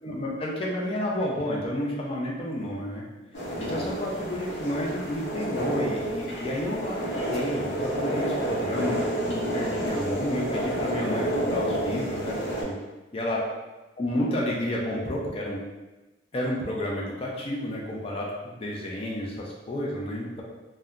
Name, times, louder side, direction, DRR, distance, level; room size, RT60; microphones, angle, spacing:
voice 1, 0.0-3.0 3.6-12.8 13.1-13.4 14.0-15.6 16.3-20.4, left 1 dB, 30° left, -3 dB, 0.4 m, -31 dB
sound 1, 3.3-12.6, right 1 dB, 75° left, 0.7 m, -30 dB
2.7 x 2.1 x 2.4 m, 1.1 s
head